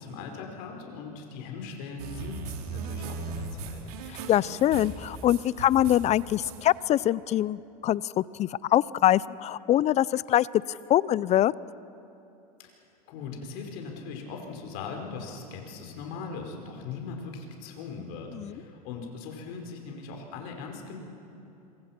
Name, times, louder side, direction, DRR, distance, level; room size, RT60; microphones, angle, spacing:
voice 1, 0.0-3.8 12.6-12.7 13.1-21.0, left 4 dB, 60° left, 2 dB, 4.9 m, -39 dB
sound 1, 2.0-6.6, right 4 dB, 75° right, 2.8 m, -38 dB
voice 2, 4.3-11.5 18.3-18.5, left 12 dB, 35° left, 21 dB, 0.5 m, -24 dB
27.0 x 25.0 x 6.0 m, 2.9 s
hypercardioid pair, 100°, 20 cm